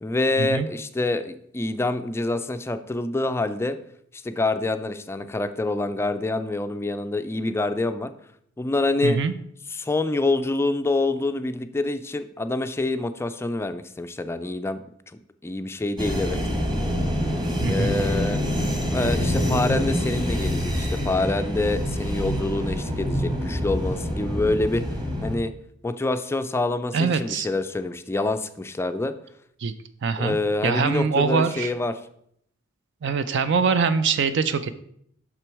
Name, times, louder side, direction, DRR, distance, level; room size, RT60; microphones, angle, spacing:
voice 1, 0.0-3.8 4.1-8.1 8.6-9.2 9.7-14.8 15.4-16.4 17.6-18.4 18.9-24.8 25.2-25.5 25.8-29.1 30.2-31.9, left 2 dB, 10° left, 10 dB, 0.3 m, -26 dB
sound 1, 16.0-25.4, equal, 20° right, 1.3 m, -26 dB
voice 2, 17.6-17.9 26.9-27.5 29.6-29.7 30.0-30.4 30.6-31.7 33.0-34.7, right 5 dB, 60° right, 12 dB, 0.4 m, -23 dB
6.0 x 6.0 x 4.6 m, 0.70 s
head